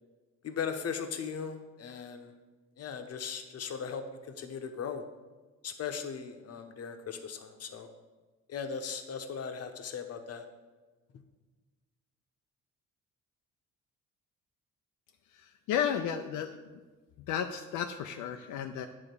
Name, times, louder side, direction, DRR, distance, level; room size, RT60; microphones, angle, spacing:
voice 1, 0.4-2.3 2.8-4.0 4.4-5.0 5.6-7.9 8.5-10.5, left 6 dB, 55° left, 7 dB, 0.9 m, -38 dB
voice 2, 15.3-16.5 17.3-18.9, left 9 dB, 85° left, 5 dB, 0.5 m, -33 dB
8.5 x 3.5 x 6.8 m, 1.3 s
cardioid pair, 90°, 30 cm